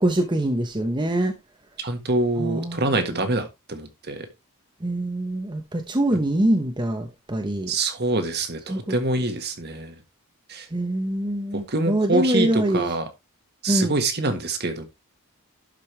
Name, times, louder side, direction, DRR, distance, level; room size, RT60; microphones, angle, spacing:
voice 1, 0.0-1.3 2.4-3.3 4.8-7.7 8.7-8.9 10.7-12.9 13.7-13.9, right 1 dB, 20° right, 0.9 m, -24 dB
voice 2, 1.8-4.3 7.7-9.9 10.5-10.7 11.5-13.1 13.6-14.9, right 2 dB, 45° right, 1.6 m, -25 dB
12.0 x 5.4 x 3.3 m
head